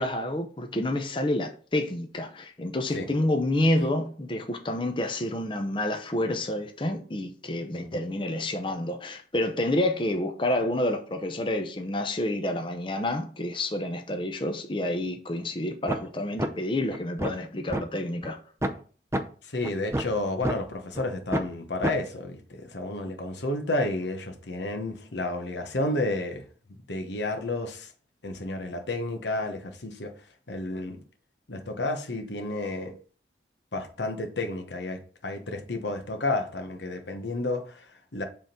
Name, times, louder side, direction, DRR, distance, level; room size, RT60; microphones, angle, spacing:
voice 1, 0.0-18.4, left 1 dB, 30° left, 0.6 m, -29 dB
sound 1, 15.9-16.1 16.4-16.5 16.9-17.8 18.2-18.3 18.6-18.8 19.1-19.2 19.6-20.6 21.0-21.1 21.3-21.5 21.8-21.9, right 1 dB, 15° right, 0.5 m, -28 dB
voice 2, 19.4-26.4 26.9-27.9 28.2-30.1 30.5-31.0 31.5-33.0 33.7-38.2, left 2 dB, 90° left, 1.1 m, -31 dB
7.7 x 3.7 x 4.3 m
head